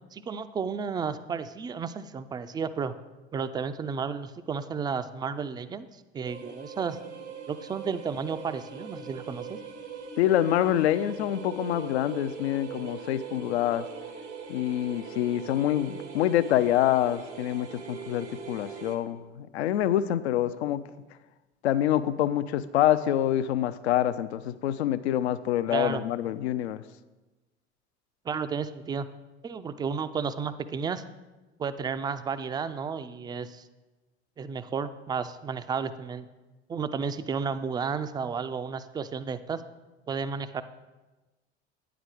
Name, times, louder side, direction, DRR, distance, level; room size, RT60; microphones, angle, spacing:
voice 1, 0.1-2.9 3.3-7.0 7.5-9.6 25.7-26.1 28.2-29.1 29.4-31.0 31.6-33.7 34.4-36.3 36.7-39.6 40.1-40.6, right 6 dB, 15° right, 13 dB, 0.3 m, -32 dB
sound 1, 6.2-19.0, right 5 dB, 80° right, 1.0 m, -41 dB
voice 2, 10.2-13.9 14.5-20.8 21.6-26.8, left 12 dB, 70° left, 15 dB, 0.5 m, -26 dB
9.4 x 5.0 x 6.2 m, 1.1 s
figure-of-eight pair, 65°, 34 cm